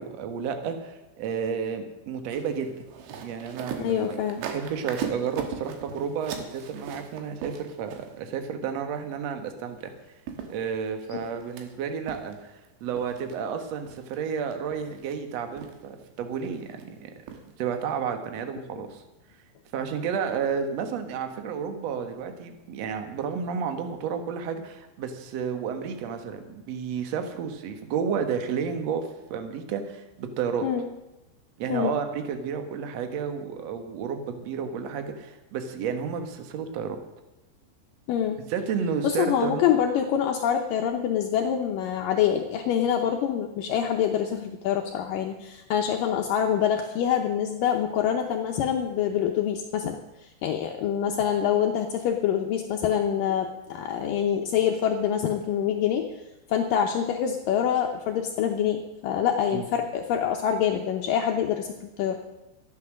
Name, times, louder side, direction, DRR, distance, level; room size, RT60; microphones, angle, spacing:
voice 1, 0.0-2.8 3.2-9.9 10.5-12.5 12.8-17.1 17.6-19.0 19.7-30.7 31.6-37.0 38.5-39.7 59.5-59.6, right 6 dB, 65° right, 7 dB, 1.6 m, -31 dB
sound 1, 2.3-8.3 9.9-10.0 10.3-11.6 12.1-12.7 12.9-13.3 13.9-14.2 14.5-15.1 15.6-16.0 16.4-16.8 17.3-17.5 17.8-17.9, right 7 dB, 90° right, 3.7 m, -39 dB
voice 2, 3.8-4.4 11.1-11.2 18.7-18.9 30.6-30.9 31.7-32.0 38.1-38.4 39.0-50.0 50.4-56.0 56.5-62.2, left 9 dB, 80° left, 2 dB, 2.0 m, -25 dB
14.0 x 11.0 x 6.4 m, 1.0 s
omnidirectional pair, 5.0 m